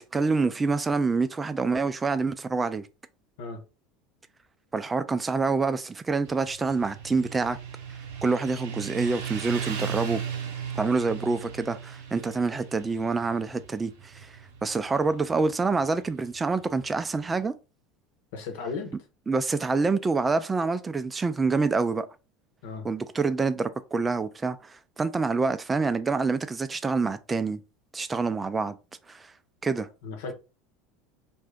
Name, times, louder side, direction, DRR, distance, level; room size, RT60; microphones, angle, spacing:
voice 1, 0.0-2.8 4.7-7.6 8.2-10.2 10.8-14.3 14.6-17.5 19.3-22.1 22.8-27.6 27.9-28.8 29.1-29.3 29.6-29.9, right 4 dB, 20° right, 0.4 m, -26 dB
Motorcycle, 6.2-17.4, right 7 dB, 80° right, 0.8 m, -37 dB
voice 2, 18.3-18.9 22.6-22.9 30.0-30.3, left 4 dB, 75° left, 1.0 m, -35 dB
2.5 x 2.3 x 3.5 m
hypercardioid pair, 85°, 0 cm